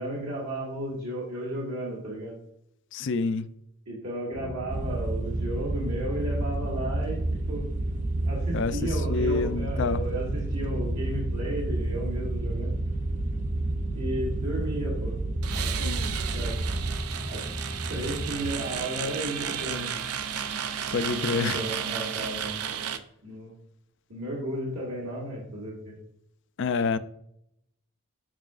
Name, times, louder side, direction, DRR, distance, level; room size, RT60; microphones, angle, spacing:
voice 1, 0.0-2.3 3.9-7.2 7.5-7.6 8.3-12.7 13.9-15.1 15.6-16.0 16.3-16.5 17.3-17.4 17.9-19.9 21.1-22.5 23.2-23.5 24.1-26.0, right 1 dB, 70° right, 1.9 m, -34 dB
voice 2, 2.9-3.4 8.5-8.7 9.1-10.0 20.9-21.6 26.6-27.0, left 4 dB, 55° left, 0.4 m, -27 dB
sound 1, 4.3-18.6, right 1 dB, 10° right, 0.7 m, -34 dB
sound 2, 4.7-17.0, right 2 dB, 35° right, 0.4 m, -31 dB
sound 3, 15.4-23.0, right 8 dB, 85° right, 0.6 m, -33 dB
7.5 x 5.5 x 2.4 m
head